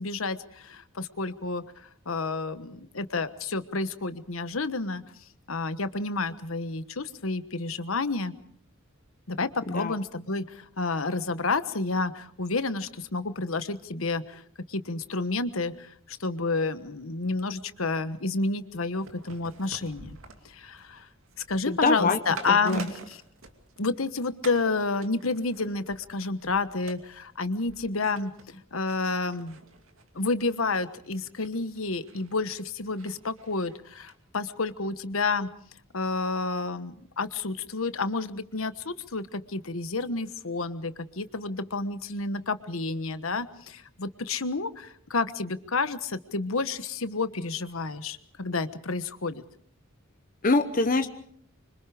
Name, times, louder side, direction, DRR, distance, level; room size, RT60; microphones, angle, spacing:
voice 1, 0.0-1.6 2.1-5.0 5.5-8.3 9.3-14.4 14.7-20.2 20.4-21.1 21.5-23.0 23.8-29.6 30.1-35.5 35.9-49.4, left 3 dB, 85° left, 12 dB, 1.3 m, -30 dB
sound 1, 18.9-24.1 24.4-24.7 25.0-34.1 34.5-34.6, right 3 dB, 85° right, 2.5 m, -48 dB
voice 2, 21.7-22.2 22.5-22.9 50.4-51.1, left 3 dB, 40° left, 7 dB, 1.0 m, -24 dB
26.0 x 25.0 x 5.0 m, 0.63 s
head